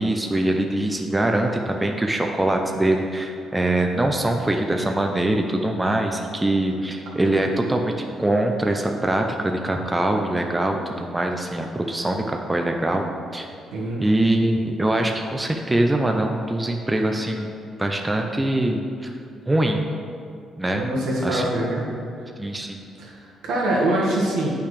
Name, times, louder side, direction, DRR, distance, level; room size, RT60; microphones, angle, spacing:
voice 1, 0.0-7.9 8.2-13.0 13.3-13.5 14.0-17.5 17.8-19.2 19.5-19.8 20.6-20.8 21.2-21.5 22.4-22.9, right 1 dB, 15° right, 3 dB, 0.6 m, -23 dB
voice 2, 13.7-14.0 20.7-21.8 23.0-24.5, right 1 dB, 85° right, -4 dB, 1.6 m, -24 dB
8.6 x 5.7 x 3.3 m, 2.4 s
cardioid pair, 90°, 0 cm